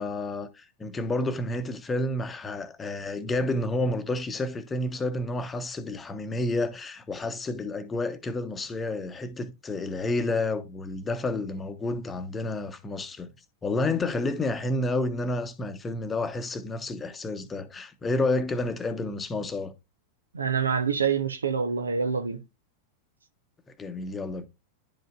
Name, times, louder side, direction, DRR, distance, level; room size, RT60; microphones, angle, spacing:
voice 1, 0.0-13.3 13.6-19.7 23.8-24.4, left 2 dB, 15° left, 0.9 m, -30 dB
voice 2, 20.3-22.4, right 6 dB, 75° right, 0.8 m, -26 dB
10.5 x 5.1 x 2.5 m
figure-of-eight pair, 90°, 0 cm